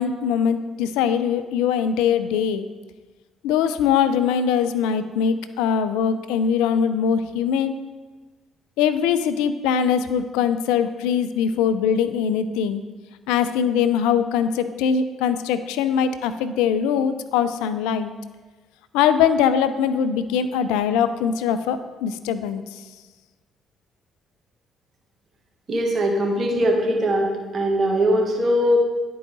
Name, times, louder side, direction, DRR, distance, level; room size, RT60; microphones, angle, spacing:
voice 1, 0.0-2.7 3.4-7.8 8.8-12.8 13.3-18.1 18.9-22.8, left 7 dB, 80° left, 11 dB, 0.3 m, -22 dB
voice 2, 25.7-27.3 27.5-28.8, equal, 45° right, 1 dB, 1.6 m, -20 dB
10.5 x 4.7 x 3.9 m, 1.3 s
hypercardioid pair, 50°, 0 cm